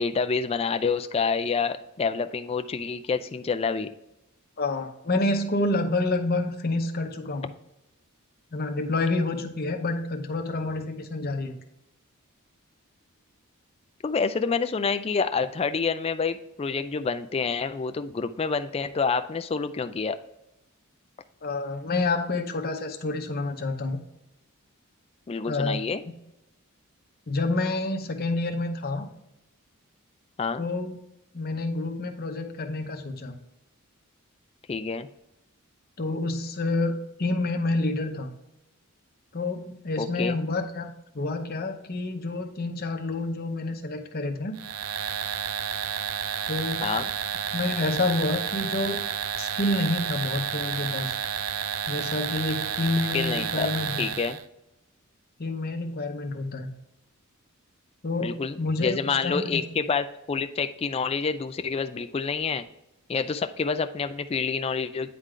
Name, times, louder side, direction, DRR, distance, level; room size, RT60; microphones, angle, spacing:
voice 1, 0.0-3.9 14.0-20.2 25.3-26.0 30.4-30.6 34.7-35.1 40.0-40.4 46.8-47.1 53.1-53.7 54.0-54.4 58.2-62.6 63.1-65.1, left 5 dB, 25° left, 9 dB, 0.3 m, -28 dB
voice 2, 4.6-7.5 8.5-11.5 21.4-24.0 25.4-25.8 27.3-29.1 30.6-30.9 31.3-33.4 36.0-38.3 39.3-44.6 46.5-46.9 47.5-49.0 49.4-51.2 51.9-54.1 55.4-56.7 58.0-59.6, left 2 dB, 45° left, 5 dB, 0.8 m, -28 dB
sound 1, 44.6-54.4, right 8 dB, 80° right, 0.4 m, -31 dB
9.4 x 3.8 x 3.2 m, 0.87 s
head